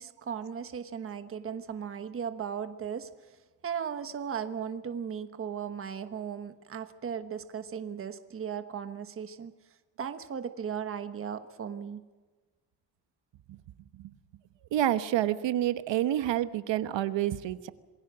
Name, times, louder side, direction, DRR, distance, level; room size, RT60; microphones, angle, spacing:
voice 1, 0.0-3.4 3.6-9.5 10.0-12.0, right 7 dB, 30° right, 9 dB, 1.2 m, -37 dB
voice 2, 14.7-17.7, right 12 dB, 80° right, 12 dB, 1.2 m, -28 dB
27.5 x 21.5 x 6.2 m, 1.3 s
cardioid pair, 180°, 43 cm